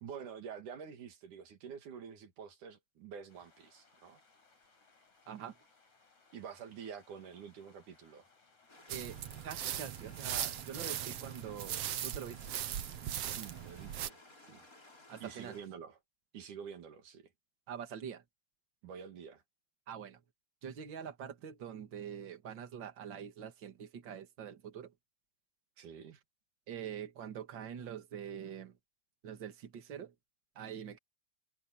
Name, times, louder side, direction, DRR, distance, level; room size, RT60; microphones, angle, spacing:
voice 1, 0.0-4.2 6.3-8.3 13.4-14.2 14.5-14.7 15.2-16.0 16.3-17.3 18.8-19.4 25.8-26.2, right 7 dB, 85° right, 3.7 m, -48 dB
sound 1, 3.3-9.2, left 3 dB, 70° left, 8.7 m, -67 dB
voice 2, 5.3-5.6 8.9-12.5 15.1-15.6 17.7-18.2 19.9-20.2 20.6-24.9 26.7-28.8 29.2-30.1 30.6-31.0, right 8 dB, 40° right, 2.4 m, -45 dB
sound 2, 8.7-15.6, left 2 dB, 25° left, 6.4 m, -58 dB
sound 3, 8.9-14.1, right 11 dB, 65° right, 1.8 m, -39 dB
omnidirectional pair, 3.5 m